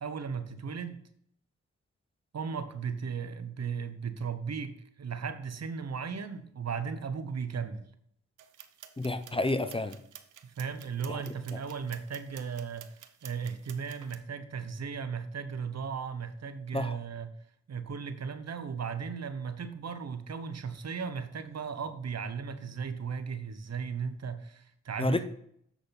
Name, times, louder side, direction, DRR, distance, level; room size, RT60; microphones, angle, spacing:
voice 1, 0.0-1.0 2.3-7.8 10.4-12.9 13.2-17.3 17.7-25.2, right 6 dB, 60° right, 11 dB, 1.0 m, -36 dB
sound 1, 8.4-14.2, right 10 dB, 90° right, 0.7 m, -52 dB
voice 2, 9.0-10.0 11.1-11.2 11.5-11.6 16.7-17.0 25.0-25.2, left 2 dB, 20° left, 10 dB, 0.7 m, -30 dB
8.1 x 6.4 x 4.1 m, 0.67 s
cardioid pair, 55°, 30 cm